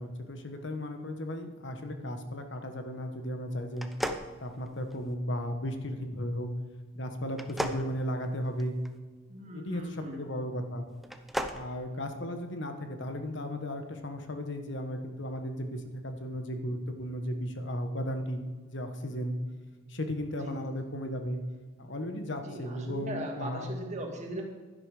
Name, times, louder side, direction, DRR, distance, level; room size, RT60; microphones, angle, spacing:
voice 1, 0.0-3.9 4.4-6.5 6.9-8.8 9.5-10.9 11.5-19.4 19.9-21.4 21.8-23.7, equal, 65° left, 6 dB, 1.3 m, -35 dB
sound 1, 3.7-5.1 7.3-8.9 11.0-11.6, equal, ahead, 0.6 m, -35 dB
voice 2, 9.3-10.3 20.4-20.7 22.4-24.4, right 1 dB, 35° right, 1 dB, 2.0 m, -39 dB
11.5 x 11.0 x 4.9 m, 1.4 s
head